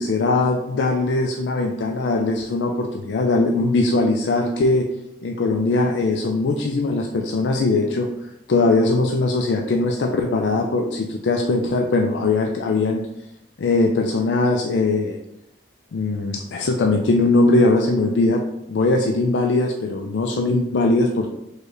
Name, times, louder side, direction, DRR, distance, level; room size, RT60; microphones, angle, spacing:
voice 1, 0.0-4.9 5.2-8.1 8.5-13.0 13.6-15.2 15.9-21.3, left 2 dB, 90° left, 3 dB, 0.4 m, -20 dB
4.5 x 3.2 x 3.1 m, 0.78 s
head